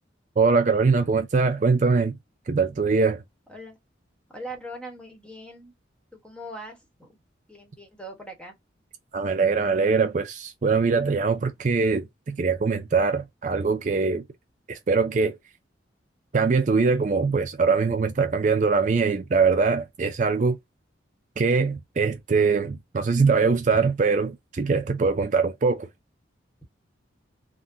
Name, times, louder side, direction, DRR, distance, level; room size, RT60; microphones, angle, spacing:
voice 1, 0.4-2.2 2.5-3.2 9.1-14.2 14.7-15.4 16.3-20.6 21.4-25.9, right 4 dB, 40° right, 0.4 m, -22 dB
voice 2, 4.3-5.7 6.1-7.2 7.5-8.5, right 1 dB, 5° left, 1.1 m, -41 dB
3.7 x 2.1 x 2.6 m
head